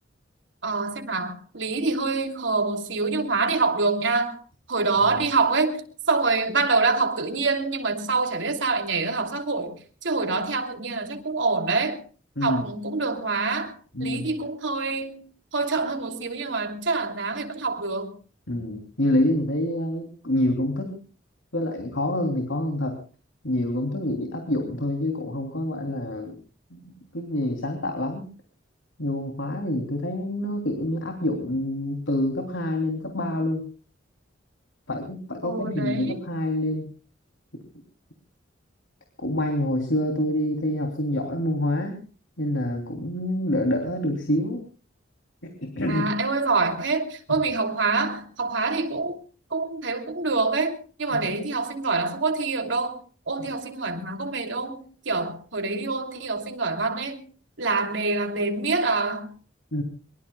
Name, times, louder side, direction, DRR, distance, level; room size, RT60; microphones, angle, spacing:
voice 1, 0.6-4.4 4.7-9.7 10.0-12.0 12.4-18.1 35.4-36.2 45.9-49.2 49.5-53.0 53.3-57.2 57.6-59.3, right 3 dB, 75° right, 3.0 m, -26 dB
voice 2, 13.9-14.3 18.5-21.0 21.5-23.0 23.4-26.3 26.7-28.3 29.0-33.7 34.9-36.9 39.2-42.0 42.4-44.6 45.4-46.1 51.1-51.3 59.7-59.8, left 1 dB, 85° left, 3.2 m, -27 dB
23.5 x 23.0 x 2.3 m
head